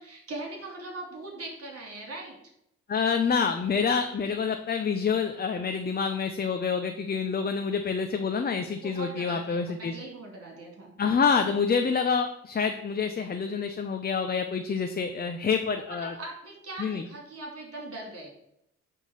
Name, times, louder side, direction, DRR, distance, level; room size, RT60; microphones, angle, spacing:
voice 1, 0.0-2.4 8.8-10.9 15.9-18.3, right 2 dB, 50° right, 1 dB, 3.4 m, -40 dB
voice 2, 2.9-9.9 11.0-16.1 16.8-17.0, left 5 dB, 30° left, 5 dB, 0.8 m, -27 dB
9.1 x 3.8 x 6.7 m, 0.76 s
cardioid pair, 90°, 30 cm